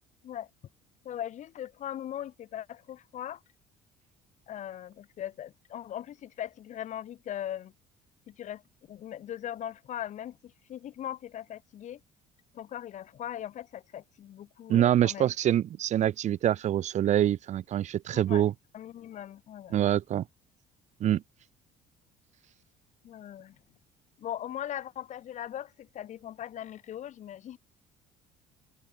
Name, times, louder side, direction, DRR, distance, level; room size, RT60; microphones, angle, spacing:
voice 1, 1.0-3.4 4.5-7.7 8.3-8.6 8.9-10.4 10.7-12.0 12.5-15.3 18.1-18.4 18.7-19.8 23.0-23.6 24.2-27.6, left 11 dB, 55° left, 3.8 m, -39 dB
voice 2, 14.7-18.5 19.7-20.2 21.0-21.2, right 11 dB, 55° right, 1.1 m, -25 dB
open air
cardioid pair, 95°, 15 cm